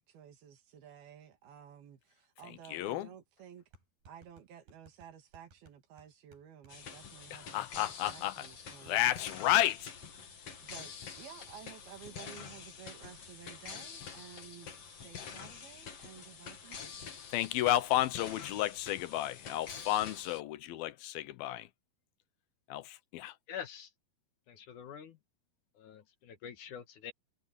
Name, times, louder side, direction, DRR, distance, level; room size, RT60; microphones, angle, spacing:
voice 1, 0.0-3.7 4.1-9.1 10.6-17.0, right 9 dB, 80° right, 4.1 m, -53 dB
voice 2, 2.7-3.1 7.3-8.4 8.8-9.9 17.3-21.7 22.7-23.3, left 14 dB, 80° left, 2.7 m, -32 dB
sound 1, 3.7-11.7 12.0-12.1 12.4-12.7, right 3 dB, 65° right, 8.7 m, -63 dB
sound 2, 6.7-20.4, left 6 dB, 45° left, 2.8 m, -47 dB
voice 3, 23.5-23.9 24.5-25.2 25.7-27.1, left 8 dB, 65° left, 2.6 m, -45 dB
omnidirectional pair, 4.3 m